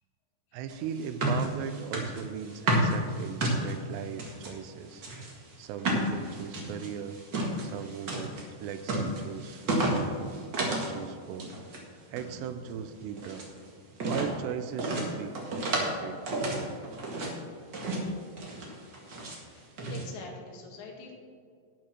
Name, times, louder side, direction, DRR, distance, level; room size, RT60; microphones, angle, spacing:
voice 1, 0.5-5.0 5.6-7.2 7.6-10.2 10.6-11.5 12.1-13.5 14.0-16.9, right 8 dB, 85° right, 10 dB, 2.8 m, -38 dB
sound 1, 0.7-4.5 4.9-11.0 11.2-11.8 12.1-13.5 13.9-14.3 14.8-16.0 16.3-17.3 17.7-18.1 18.4-19.4 19.8-20.0, right 1 dB, 65° right, 1.1 m, -31 dB
voice 2, 19.5-21.1, left 4 dB, 75° left, -1 dB, 4.1 m, -46 dB
10.5 x 9.1 x 6.0 m, 2.1 s
omnidirectional pair, 5.1 m